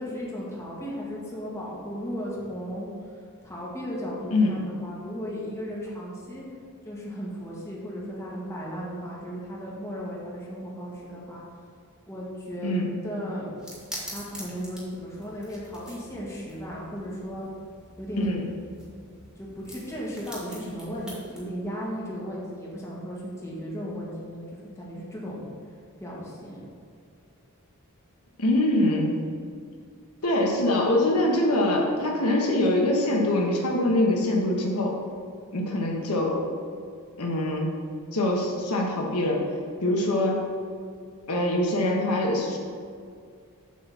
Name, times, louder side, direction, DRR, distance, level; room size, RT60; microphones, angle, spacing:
voice 1, 0.0-2.9 3.4-6.4 6.8-11.4 12.1-13.5 14.0-17.5 18.0-18.3 19.4-24.4 24.8-25.5 26.0-26.6, equal, 15° left, -6 dB, 1.9 m, -35 dB
sound 1, 13.6-21.5, equal, 5° right, 2.3 m, -45 dB
voice 2, 28.4-29.2 30.2-34.9 35.5-36.4 37.2-37.7 38.1-39.4 39.8-40.4 41.3-42.6, left 1 dB, 80° left, -1 dB, 1.3 m, -24 dB
8.0 x 4.2 x 7.0 m, 2.2 s
head